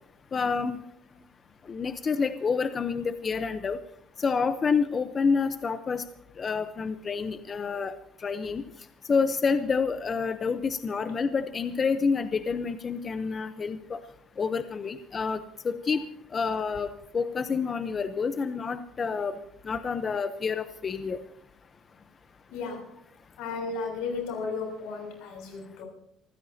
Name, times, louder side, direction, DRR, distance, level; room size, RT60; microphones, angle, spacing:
voice 1, 0.3-0.8 1.7-3.8 4.2-6.0 6.4-7.9 8.2-8.6 9.1-14.0 14.4-16.0 16.3-19.4 19.6-21.2, left 5 dB, 30° left, 10 dB, 0.8 m, -28 dB
voice 2, 22.5-23.0 23.4-25.9, left 4 dB, 90° left, 3 dB, 6.8 m, -34 dB
26.0 x 15.0 x 2.8 m, 0.70 s
cardioid pair, 140°, 0 cm